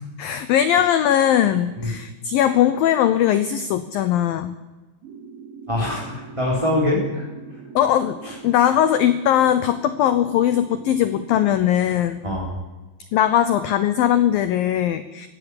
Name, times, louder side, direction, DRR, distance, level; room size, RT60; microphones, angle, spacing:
voice 1, 0.2-4.6 7.8-8.2 8.4-12.2 13.1-15.3, left 10 dB, 90° left, 12 dB, 2.0 m, -19 dB
sound 1, 5.0-11.6, right 6 dB, 80° right, 4.0 m, -41 dB
voice 2, 5.7-7.2 7.5-7.6 8.2-8.3 12.2-12.5, left 1 dB, 5° right, -4 dB, 3.2 m, -24 dB
19.0 x 16.0 x 9.9 m, 1.2 s
omnidirectional pair, 5.3 m